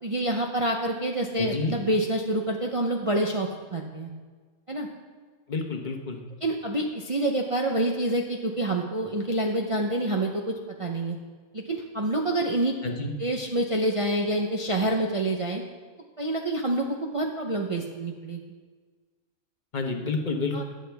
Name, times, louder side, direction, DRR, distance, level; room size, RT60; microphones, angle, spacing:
voice 1, 0.0-4.1 4.7-4.9 6.4-11.2 11.5-12.7 13.2-15.6 16.2-18.4 20.5-20.6, right 1 dB, 35° right, 1 dB, 0.6 m, -27 dB
voice 2, 1.4-1.7 5.5-6.2 12.8-13.1 19.7-20.6, left 3 dB, 35° left, 4 dB, 1.1 m, -29 dB
13.0 x 9.8 x 3.4 m, 1.5 s
omnidirectional pair, 1.5 m